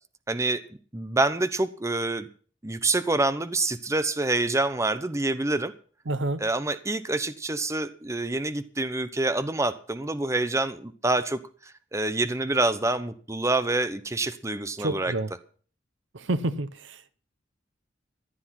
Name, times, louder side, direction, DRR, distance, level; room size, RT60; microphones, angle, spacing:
voice 1, 0.3-0.6 0.9-2.3 2.6-5.7 6.4-15.1, right 2 dB, 15° right, 0.8 m, -27 dB
voice 2, 6.1-6.4 14.8-15.3 16.1-17.2, right 2 dB, 75° right, 0.9 m, -29 dB
14.5 x 10.5 x 5.8 m
head